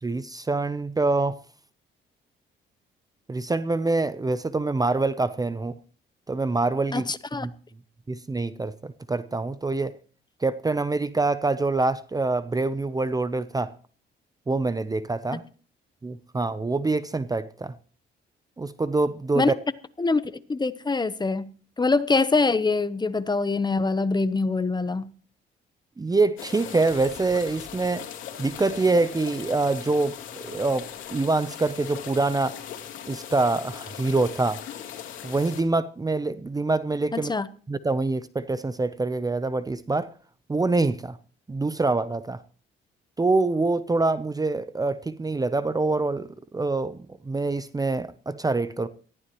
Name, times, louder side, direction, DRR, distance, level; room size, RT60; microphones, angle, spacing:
voice 1, 0.0-1.4 3.3-5.7 6.3-7.1 7.4-7.5 8.1-9.9 10.4-13.7 14.5-15.4 16.0-17.7 18.6-19.5 26.0-28.1 28.4-32.6 33.1-34.6 35.2-37.3 37.7-40.1 40.5-41.2 41.5-42.4 43.2-47.0 47.2-48.9, right 3 dB, 20° right, 0.7 m, -25 dB
voice 2, 6.9-7.5 19.3-19.5 20.0-21.5 21.8-25.1 37.1-37.5, left 3 dB, 20° left, 0.9 m, -24 dB
sound 1, 26.4-35.6, left 9 dB, 85° left, 2.6 m, -39 dB
18.5 x 14.5 x 3.1 m
cardioid pair, 90°, 20 cm